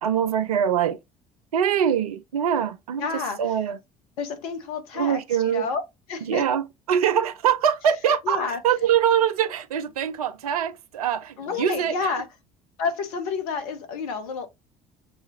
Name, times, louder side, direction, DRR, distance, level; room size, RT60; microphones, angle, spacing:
voice 1, 0.0-1.0 1.5-3.1 3.4-3.8 5.0-5.7 6.3-8.4 8.6-11.9, right 9 dB, 70° right, 0.5 m, -23 dB
voice 2, 3.0-3.6 4.2-5.8 6.1-6.5 8.2-8.6 11.4-12.3 12.8-14.5, left 5 dB, 65° left, 1.1 m, -29 dB
6.7 x 2.4 x 2.6 m
figure-of-eight pair, 55°, 20 cm